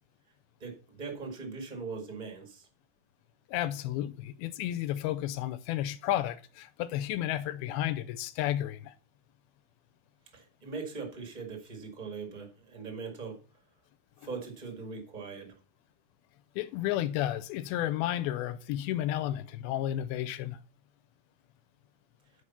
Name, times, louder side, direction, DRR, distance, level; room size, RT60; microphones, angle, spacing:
voice 1, 0.6-2.7 10.3-13.4 14.2-15.5, right 4 dB, 50° right, 0.5 m, -40 dB
voice 2, 3.5-8.9 16.6-20.6, left 13 dB, 85° left, 2.5 m, -32 dB
9.8 x 4.9 x 5.7 m
omnidirectional pair, 4.4 m